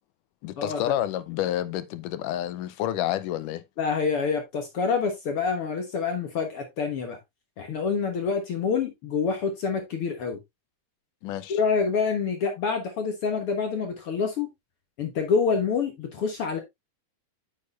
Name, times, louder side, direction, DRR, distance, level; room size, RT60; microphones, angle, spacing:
voice 1, 0.4-3.6 11.2-11.6, left 12 dB, 85° left, 2.2 m, -29 dB
voice 2, 3.8-7.2 7.6-10.4 11.5-14.5 15.0-16.6, left 5 dB, 55° left, 1.7 m, -27 dB
9.3 x 6.7 x 2.5 m
omnidirectional pair, 3.7 m